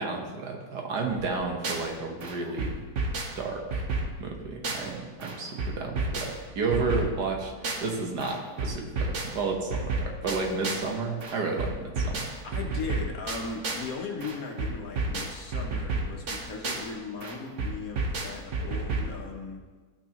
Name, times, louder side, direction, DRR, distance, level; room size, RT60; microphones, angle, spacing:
voice 1, 0.0-2.7 3.3-3.8 4.2-12.3, right 3 dB, 75° right, 1 dB, 1.7 m, -32 dB
sound 1, 1.1-1.9 2.2-5.0 5.2-10.9 11.2-13.9 14.2-16.9 17.2-19.2, right 3 dB, 50° right, 1.2 m, -32 dB
voice 2, 12.4-19.6, left 4 dB, 60° left, 2 dB, 1.4 m, -38 dB
13.5 x 6.0 x 2.9 m, 1.4 s
omnidirectional pair, 1.8 m